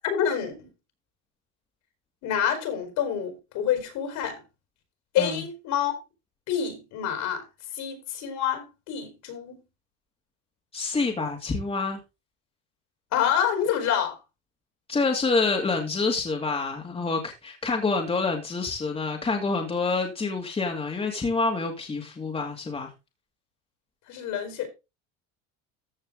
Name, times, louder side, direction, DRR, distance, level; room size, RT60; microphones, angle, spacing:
voice 1, 0.0-0.7 2.2-4.4 5.1-5.9 6.5-7.4 7.8-9.6 13.1-14.2 24.1-24.7, left 9 dB, 65° left, 4.8 m, -27 dB
voice 2, 10.7-12.0 14.9-22.9, left 3 dB, 15° left, 2.5 m, -27 dB
14.5 x 5.5 x 3.8 m
supercardioid pair, 120°, 33 cm